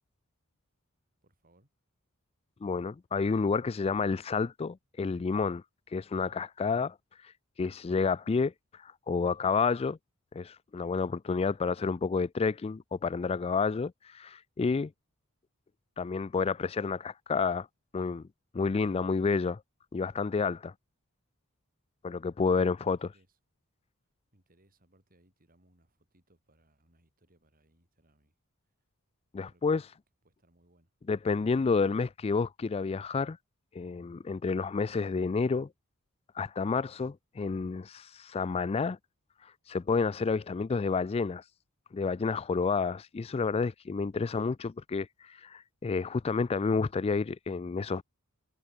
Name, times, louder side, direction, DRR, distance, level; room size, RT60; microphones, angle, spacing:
voice 1, 1.2-1.7 23.0-23.4 24.3-28.4 29.5-29.8 30.2-30.9, right 1 dB, 40° right, 7.1 m, -67 dB
voice 2, 2.6-5.6 5.9-7.0 7.2-7.3 7.6-10.0 10.3-14.9 16.0-17.7 17.9-18.2 18.5-19.6 19.9-20.7 22.0-23.0 29.3-29.8 31.1-33.4 33.7-35.7 36.4-39.0 39.4-41.4 41.9-48.0, left 4 dB, 25° left, 0.3 m, -30 dB
head